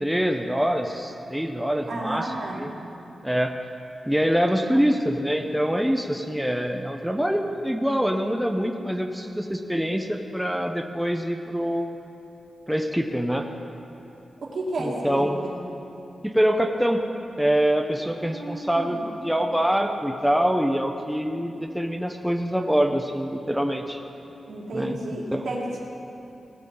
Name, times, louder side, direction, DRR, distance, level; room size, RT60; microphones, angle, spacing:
voice 1, 0.0-2.7 3.2-3.6 4.1-12.0 12.7-13.4 14.8-15.4 16.2-17.0 17.4-24.0 24.7-25.0 25.3-25.5, equal, ahead, 4 dB, 0.5 m, -25 dB
voice 2, 1.9-2.7 4.7-4.9 14.4-15.5 18.2-19.1 24.5-25.8, right 1 dB, 75° right, -4 dB, 2.2 m, -32 dB
17.5 x 8.8 x 3.9 m, 2.9 s
wide cardioid pair, 140°, 0 cm